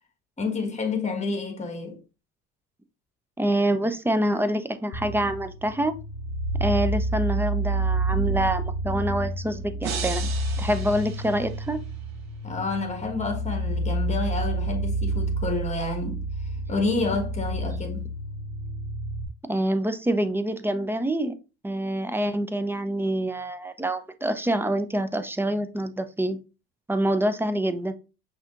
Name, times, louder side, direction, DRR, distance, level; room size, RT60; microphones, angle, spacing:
voice 1, 0.4-2.0 12.4-16.3 16.7-18.1, left 3 dB, 20° left, 1.4 m, -29 dB
voice 2, 3.4-5.9 6.6-10.3 10.6-11.8 19.5-21.3 21.6-26.4 26.9-27.9, right 1 dB, 5° right, 0.5 m, -26 dB
sound 1, 4.9-19.2, right 2 dB, 90° left, 0.7 m, -29 dB
sound 2, 9.8-12.0, right 7 dB, 60° right, 0.9 m, -36 dB
5.6 x 2.8 x 2.4 m
supercardioid pair, 75°, 31 cm